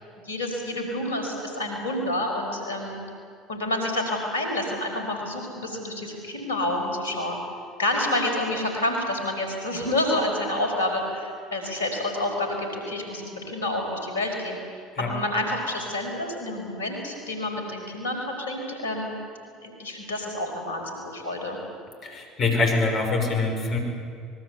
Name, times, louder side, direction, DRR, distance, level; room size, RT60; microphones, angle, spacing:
voice 1, 0.2-3.0 3.5-7.4 7.8-14.6 15.0-19.1 19.6-21.6, left 1 dB, 85° left, 3 dB, 5.1 m, -28 dB
voice 2, 22.0-23.8, left 3 dB, 45° left, 4 dB, 6.0 m, -24 dB
25.0 x 22.0 x 8.3 m, 2.3 s
hypercardioid pair, 65°, 0 cm